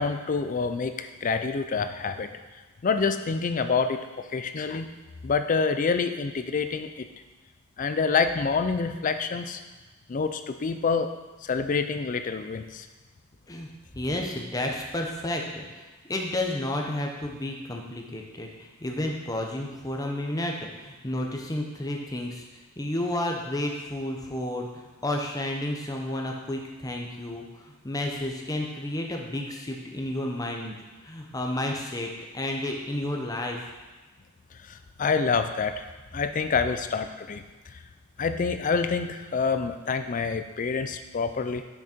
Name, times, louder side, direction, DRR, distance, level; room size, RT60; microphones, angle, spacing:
voice 1, 0.0-2.3 2.8-4.9 5.2-7.1 7.8-9.6 10.1-11.1 11.4-12.9 34.6-35.9 36.1-37.8 38.2-41.6, left 5 dB, 40° left, 8 dB, 0.4 m, -27 dB
voice 2, 13.9-22.4 22.8-30.7 31.0-33.7, left 1 dB, 15° left, 1 dB, 0.8 m, -31 dB
6.4 x 6.0 x 4.3 m, 1.2 s
head